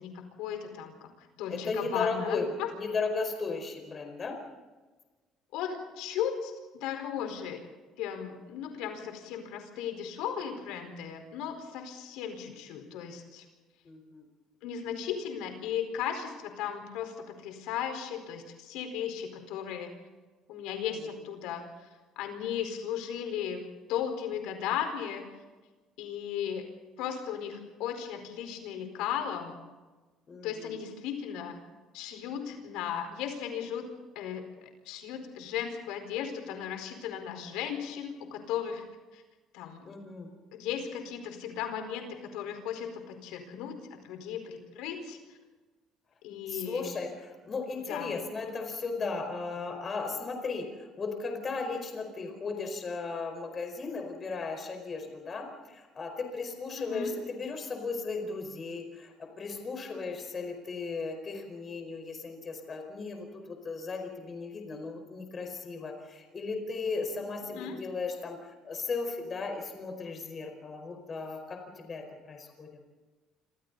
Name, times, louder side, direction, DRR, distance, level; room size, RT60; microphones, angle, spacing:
voice 1, 0.0-2.7 5.5-7.6 8.0-13.4 14.6-19.9 20.5-21.9 22.2-23.6 23.9-25.2 26.0-26.7 27.0-29.5 30.4-31.6 31.9-33.9 34.1-34.5 34.8-38.8 39.1-39.2 39.5-39.8 40.5-43.8 44.0-45.2 46.2-46.9 47.9-48.1 56.8-57.1 67.5-67.8, left 8 dB, 85° left, 5 dB, 4.6 m, -36 dB
voice 2, 1.5-2.5 2.7-4.4 13.8-14.2 30.3-30.8 39.8-40.3 46.5-68.4 68.6-72.7, left 4 dB, 25° left, 4 dB, 4.8 m, -36 dB
29.0 x 27.0 x 4.1 m, 1.3 s
cardioid pair, 155°, 0 cm